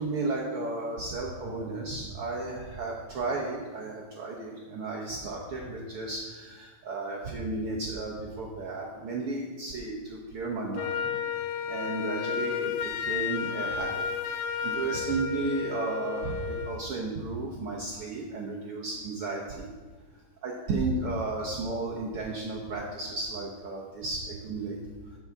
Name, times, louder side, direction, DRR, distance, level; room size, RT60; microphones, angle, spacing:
voice 1, 0.0-14.0 14.6-19.7 20.4-24.8, right 3 dB, 80° right, -3 dB, 1.2 m, -33 dB
Wind instrument woodwind instrument, 10.7-16.8, left 7 dB, 80° left, 2.3 m, -32 dB
14.5 x 7.1 x 3.6 m, 1.4 s
omnidirectional pair, 4.0 m